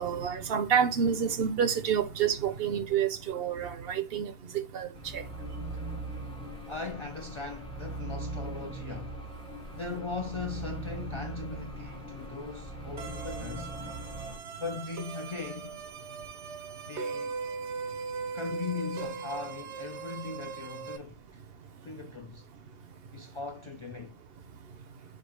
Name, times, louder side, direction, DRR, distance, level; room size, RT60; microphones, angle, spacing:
voice 1, 0.0-4.9 5.1-5.2, right 8 dB, 65° right, 0.8 m, -28 dB
sound 1, 5.0-14.4, right 1 dB, 5° left, 0.7 m, -40 dB
voice 2, 6.7-9.2 9.7-13.7 14.5-15.8 16.9-17.4 18.3-21.4 21.8-22.5 23.1-24.1, left 4 dB, 50° left, 0.3 m, -39 dB
sound 2, 13.0-21.0, right 5 dB, 85° right, 1.1 m, -39 dB
4.3 x 2.4 x 4.6 m
omnidirectional pair, 1.1 m